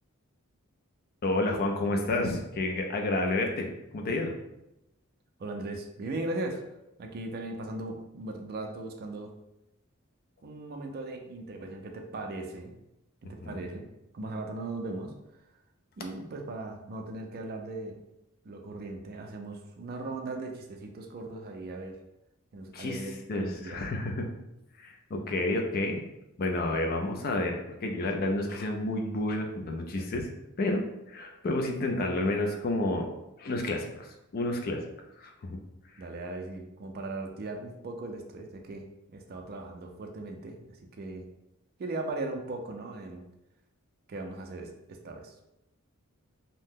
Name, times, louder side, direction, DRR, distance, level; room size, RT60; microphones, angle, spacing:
voice 1, 1.2-3.7 3.9-4.3 13.4-13.6 22.7-24.3 24.8-26.0 26.4-30.3 30.6-30.8 31.1-33.1 33.4-34.8 35.2-35.6, left 2 dB, 45° left, 3 dB, 0.4 m, -30 dB
voice 2, 5.4-6.6 7.0-9.3 10.4-12.7 13.3-13.9 14.1-15.1 16.0-18.0 18.4-22.0 22.5-23.8 36.0-41.2 41.8-43.2 44.1-45.3, right 2 dB, 45° right, 4 dB, 0.4 m, -38 dB
2.7 x 2.1 x 3.5 m, 0.88 s
head